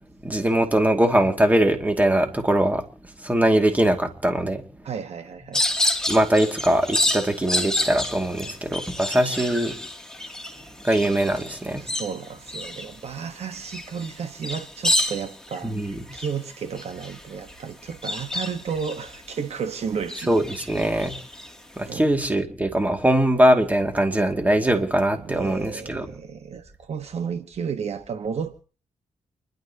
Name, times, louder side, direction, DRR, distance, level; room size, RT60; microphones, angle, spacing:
voice 1, 0.2-2.8 3.2-4.6 6.1-9.7 10.8-11.8 15.6-16.0 20.3-21.2 21.8-26.1, right 1 dB, 15° right, 2.4 m, -21 dB
voice 2, 4.8-5.6 11.8-20.3 20.6-20.7 21.8-22.1 25.2-28.6, right 6 dB, 60° right, 1.4 m, -33 dB
sound 1, 5.5-19.6 20.0-21.9, left 1 dB, 5° left, 2.8 m, -29 dB
29.5 x 12.0 x 2.9 m
cardioid pair, 95°, 12 cm